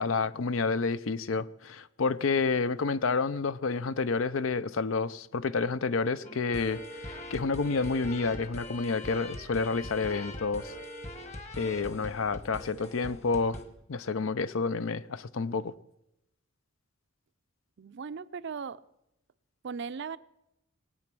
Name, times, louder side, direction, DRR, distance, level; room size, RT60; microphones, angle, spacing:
voice 1, 0.0-10.7 11.6-13.6 13.9-15.7, left 4 dB, 70° left, 0.6 m, -29 dB
sound 1, 6.2-13.6, left 1 dB, 35° left, 1.5 m, -42 dB
voice 2, 17.8-18.8 19.6-20.2, right 6 dB, 60° right, 0.5 m, -37 dB
20.5 x 8.8 x 6.1 m
head